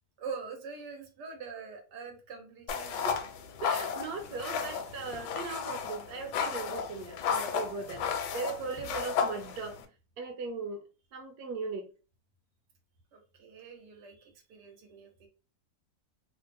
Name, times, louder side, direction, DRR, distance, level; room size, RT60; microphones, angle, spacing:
voice 1, 0.2-3.1 13.1-15.3, right 5 dB, 90° right, 1.4 m, -44 dB
sound 1, 2.7-9.9, left 6 dB, 80° left, 1.2 m, -34 dB
voice 2, 3.6-8.0 8.3-9.8 10.2-10.8 11.1-11.9, right 4 dB, 75° right, 1.2 m, -38 dB
3.1 x 2.0 x 3.4 m
omnidirectional pair, 1.8 m